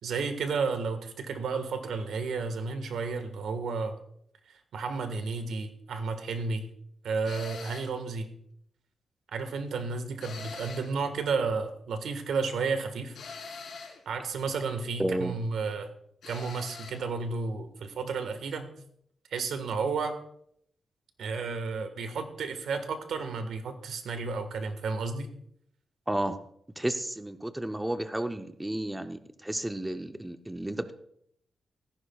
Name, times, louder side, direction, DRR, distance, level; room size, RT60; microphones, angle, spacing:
voice 1, 0.0-4.0 4.7-6.7 7.0-8.3 9.3-13.2 14.0-15.9 16.3-18.7 19.3-20.2 21.2-25.3, right 4 dB, 90° right, 8 dB, 1.4 m, -32 dB
sound 1, 7.2-8.0 10.2-11.0 13.1-14.0 16.2-17.0, left 4 dB, 80° left, 3.8 m, -43 dB
voice 2, 15.0-15.3 26.1-26.4 26.8-30.9, right 1 dB, 10° right, 8 dB, 0.5 m, -32 dB
16.5 x 14.5 x 2.3 m, 0.70 s
wide cardioid pair, 160°, 0 cm